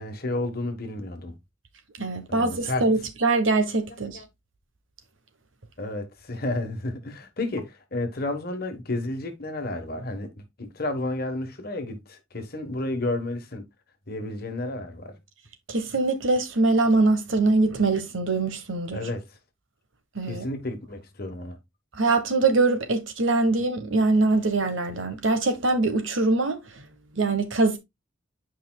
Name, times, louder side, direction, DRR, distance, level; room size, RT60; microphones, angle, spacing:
voice 1, 0.0-1.3 2.3-2.9 4.1-4.2 5.8-10.3 10.6-13.6 14.1-15.1 18.9-19.2 20.3-21.6, left 2 dB, 50° left, 1.2 m, -31 dB
voice 2, 2.0-4.2 15.7-19.0 20.1-20.5 21.9-26.6 27.1-27.8, right 3 dB, 75° right, 1.2 m, -23 dB
8.4 x 5.0 x 2.3 m
head